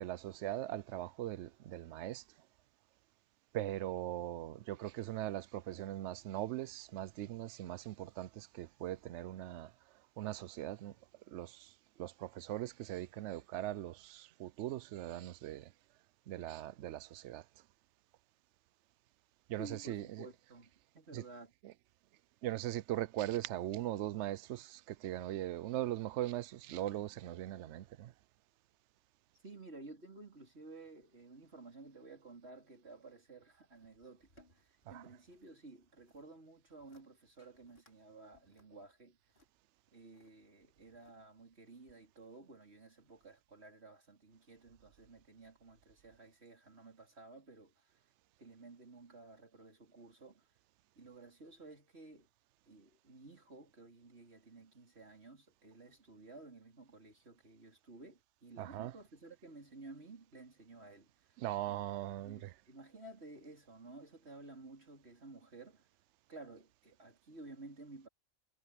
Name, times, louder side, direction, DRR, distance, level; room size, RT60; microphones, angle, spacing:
voice 1, 0.0-2.2 3.5-9.7 10.2-10.9 11.3-11.7 12.0-15.7 16.3-17.4 19.5-20.3 21.1-21.2 21.6-21.7 22.4-28.1 34.9-35.0 58.6-58.9 61.4-62.5, right 14 dB, 70° right, 0.8 m, -40 dB
voice 2, 19.6-21.5 29.4-34.5 34.9-39.2 39.9-47.7 48.4-50.4 51.0-52.3 52.7-61.1 61.7-61.9 62.2-65.8 66.3-68.1, right 2 dB, 50° right, 4.5 m, -54 dB
sound 1, 33.7-35.5 35.8-36.3 36.7-37.1 37.4-38.0 38.3-40.3 40.8-41.4 41.9-42.0, left 1 dB, 45° left, 5.9 m, -69 dB
omnidirectional pair, 1.3 m